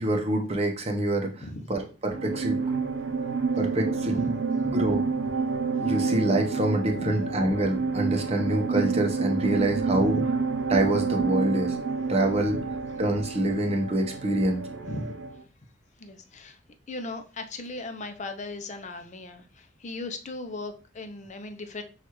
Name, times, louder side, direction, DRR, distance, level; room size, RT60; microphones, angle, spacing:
voice 1, 0.0-1.4 1.7-2.6 3.6-4.1 4.6-5.0 5.8-10.1 10.7-11.8 12.1-12.6 13.0-14.6, right 1 dB, 35° right, 3 dB, 0.8 m, -26 dB
sound 1, 2.1-15.4, right 4 dB, 75° right, 0.6 m, -29 dB
voice 2, 4.1-4.5 7.0-7.2 9.9-10.3 12.5-12.6 14.8-15.2 16.0-16.6 16.9-21.8, left 2 dB, 40° left, 7 dB, 0.5 m, -36 dB
6.0 x 2.4 x 3.0 m, 0.35 s
head